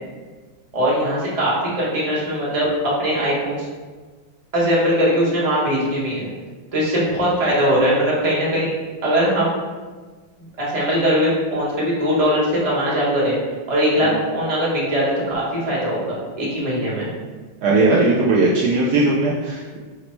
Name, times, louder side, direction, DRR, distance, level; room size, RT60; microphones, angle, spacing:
voice 1, 0.7-3.6 4.5-6.3 6.7-8.7 9.0-9.5 10.6-13.4 13.7-17.1, equal, 30° right, -6 dB, 0.7 m, -20 dB
voice 2, 17.6-19.8, right 2 dB, 85° right, -5 dB, 0.8 m, -18 dB
5.1 x 2.0 x 4.3 m, 1.4 s
omnidirectional pair, 2.3 m